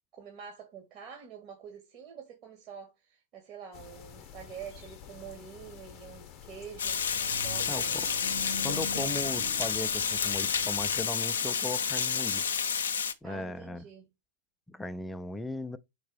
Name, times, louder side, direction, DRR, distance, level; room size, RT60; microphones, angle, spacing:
voice 1, 0.1-7.0 7.3-7.9 13.2-14.1, right 7 dB, 40° right, 1.8 m, -46 dB
sound 1, 3.7-11.0, left 10 dB, 35° left, 0.8 m, -50 dB
sound 2, 6.7-12.3, right 1 dB, 60° right, 3.0 m, -44 dB
Water, 6.8-13.1, left 7 dB, 65° left, 0.6 m, -30 dB
voice 2, 7.7-8.1 8.6-12.4 13.2-13.8 14.7-15.8, left 2 dB, 5° left, 0.5 m, -37 dB
4.7 x 4.4 x 4.7 m
figure-of-eight pair, 90°, 0 cm